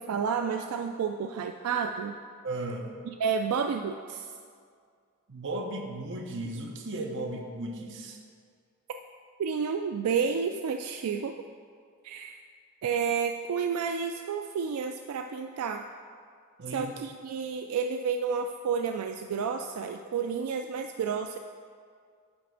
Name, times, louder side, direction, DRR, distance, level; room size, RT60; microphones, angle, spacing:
voice 1, 0.0-2.2 3.1-4.3 9.4-11.3 12.0-12.4 12.8-15.8 16.7-21.4, right 6 dB, 85° right, 6 dB, 0.3 m, -30 dB
voice 2, 2.4-3.0 5.3-8.2 16.6-16.9, right 2 dB, 60° right, 2 dB, 0.9 m, -35 dB
9.8 x 3.4 x 6.3 m, 2.1 s
head